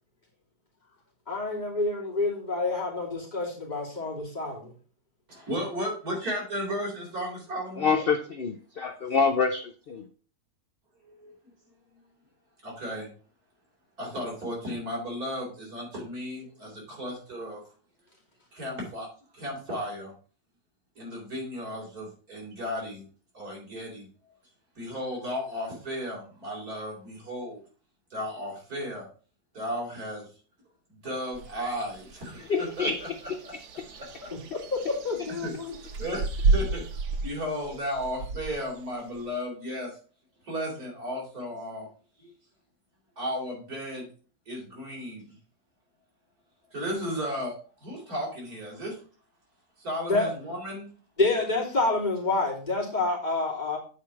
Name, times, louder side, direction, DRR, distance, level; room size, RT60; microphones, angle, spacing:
voice 1, 1.3-4.7 34.3-35.8 50.1-50.3 51.2-53.8, left 3 dB, 25° left, -4 dB, 3.1 m, -28 dB
voice 2, 5.3-7.9 9.1-9.2 11.0-11.4 12.6-13.1 14.0-17.6 18.5-19.1 19.3-20.1 21.0-23.1 23.3-24.1 24.8-27.6 28.1-29.1 29.5-30.3 31.0-33.1 33.4-34.3 35.4-35.5 35.8-36.8 37.2-39.9 40.5-41.9 42.2-42.3 43.2-44.1 44.5-45.4 46.7-47.5 47.8-49.0 49.8-50.9, equal, 65° right, -2 dB, 4.3 m, -34 dB
voice 3, 7.8-10.0 32.5-33.0, left 5 dB, 50° left, 7 dB, 0.7 m, -26 dB
sound 1, 31.3-39.4, right 3 dB, 90° right, 1.7 m, -32 dB
8.4 x 4.9 x 5.9 m, 0.40 s
omnidirectional pair, 1.7 m